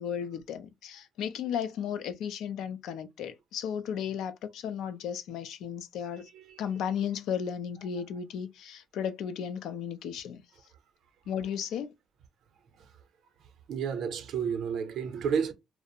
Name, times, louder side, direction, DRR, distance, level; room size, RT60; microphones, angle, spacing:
voice 1, 0.0-6.3 6.6-10.4 11.3-11.9, left 8 dB, 85° left, 0.4 m, -34 dB
voice 2, 6.2-6.6 13.7-15.5, right 6 dB, 75° right, 0.6 m, -31 dB
2.4 x 2.0 x 2.6 m
cardioid pair, 90°, 0 cm